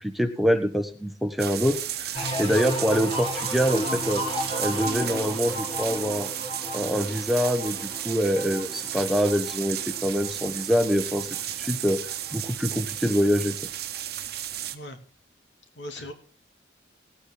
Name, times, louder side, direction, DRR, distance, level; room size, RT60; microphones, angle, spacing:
voice 1, 0.0-4.2 4.6-6.3 6.7-13.6, equal, ahead, 7 dB, 1.0 m, -25 dB
sound 1, 1.4-14.8, right 11 dB, 55° right, 1.1 m, -33 dB
sound 2, 2.1-11.7 12.1-12.6, left 1 dB, 30° left, 2.0 m, -34 dB
voice 2, 14.3-15.0 15.8-16.1, left 1 dB, 75° left, 4 dB, 2.8 m, -40 dB
18.5 x 8.9 x 3.8 m, 0.41 s
head